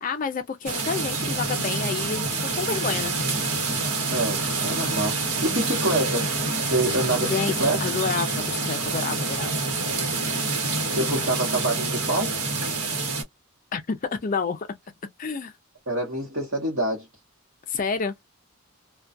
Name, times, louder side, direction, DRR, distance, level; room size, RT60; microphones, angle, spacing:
voice 1, 0.0-3.1 7.2-9.5 13.7-14.7 15.2-15.5 17.7-18.1, left 5 dB, 35° left, 0.4 m, -29 dB
sound 1, 0.7-13.2, right 3 dB, 80° right, 1.1 m, -27 dB
voice 2, 4.1-6.3 6.7-7.8 10.9-12.4 15.9-17.1, right 1 dB, 55° right, 1.0 m, -26 dB
2.3 x 2.2 x 2.5 m
head